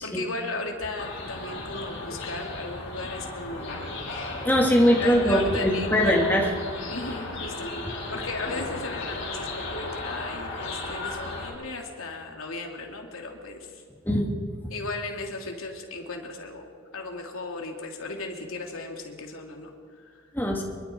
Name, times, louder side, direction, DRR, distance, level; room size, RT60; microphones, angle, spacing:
voice 1, 0.0-4.0 5.0-6.2 6.9-7.7 8.1-13.8 14.7-19.7, left 3 dB, 75° left, 1 dB, 3.0 m, -36 dB
sound 1, 1.0-11.5, left 2 dB, 60° left, 4.7 m, -35 dB
voice 2, 4.4-6.5 14.1-14.4 20.3-20.6, equal, 10° left, -1 dB, 2.6 m, -21 dB
25.5 x 23.0 x 4.7 m, 2.1 s
head